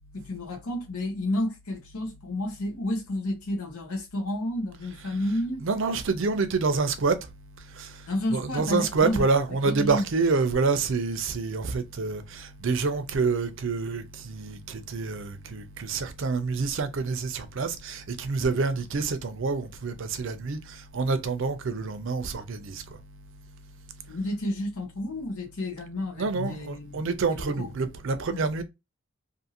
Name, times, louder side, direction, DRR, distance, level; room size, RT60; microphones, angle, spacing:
voice 1, 0.1-5.7 8.1-9.2 9.6-10.0 24.1-27.0 27.3-27.7 28.3-28.4, left 1 dB, 85° left, 0.9 m, -31 dB
voice 2, 5.6-7.2 7.8-7.9 8.3-22.8 26.2-28.6, right 4 dB, 60° right, 0.5 m, -27 dB
2.6 x 2.6 x 2.8 m
head